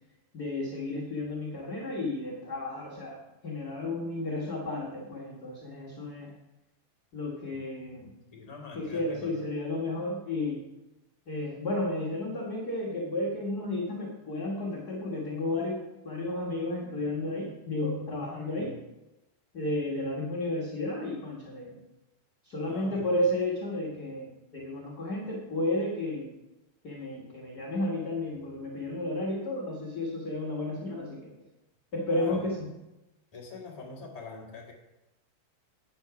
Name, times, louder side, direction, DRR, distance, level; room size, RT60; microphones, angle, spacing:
voice 1, 0.3-6.3 7.1-8.1 8.7-10.6 11.3-18.8 19.5-21.8 22.4-26.3 26.8-31.3 31.9-32.7, left 1 dB, 70° left, -5 dB, 0.9 m, -32 dB
voice 2, 8.0-9.3 22.6-23.1 32.1-32.5 33.3-34.7, left 4 dB, 25° left, -2 dB, 0.8 m, -44 dB
9.0 x 6.2 x 5.8 m, 0.97 s
omnidirectional pair, 4.1 m